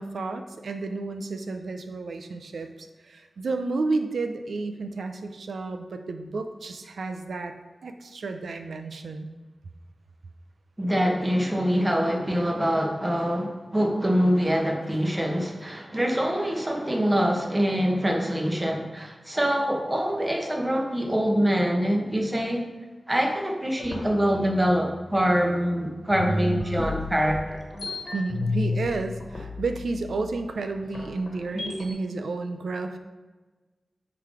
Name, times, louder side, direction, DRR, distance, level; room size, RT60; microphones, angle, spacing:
voice 1, 0.0-7.5 7.8-9.3 28.1-33.0, right 3 dB, 80° right, 7 dB, 0.6 m, -31 dB
voice 2, 10.8-22.7 23.1-27.6, equal, 20° right, 1 dB, 1.3 m, -24 dB
sound 1, 23.8-25.7 26.1-31.9, left 2 dB, 65° left, 1.3 m, -32 dB
8.0 x 3.9 x 4.9 m, 1.3 s
cardioid pair, 45°, 0 cm